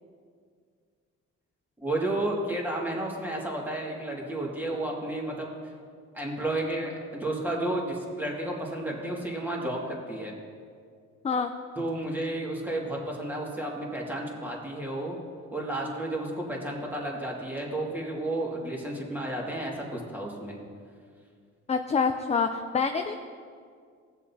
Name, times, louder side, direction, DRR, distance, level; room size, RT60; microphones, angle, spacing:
voice 1, 1.8-5.5 6.1-10.3 11.8-15.2 15.5-20.6, right 1 dB, 5° right, -3 dB, 2.2 m, -32 dB
voice 2, 21.7-23.2, left 5 dB, 20° left, 6 dB, 0.5 m, -26 dB
17.5 x 7.1 x 2.8 m, 2.1 s
cardioid pair, 90°, 30 cm